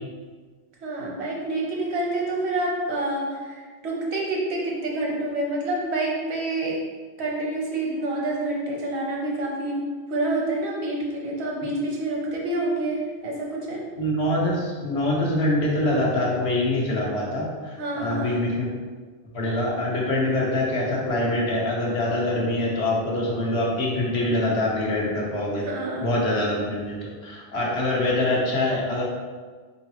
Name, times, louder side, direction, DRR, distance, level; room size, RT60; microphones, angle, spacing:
voice 1, 0.8-3.5 3.8-6.8 7.2-9.8 10.1-13.8 17.8-18.4 25.5-26.1, right 2 dB, 75° right, -2 dB, 1.1 m, -27 dB
voice 2, 14.0-18.7 19.3-25.6 26.0-29.0, left 1 dB, 75° left, -4 dB, 1.2 m, -24 dB
3.9 x 3.8 x 3.0 m, 1.5 s
omnidirectional pair, 1.1 m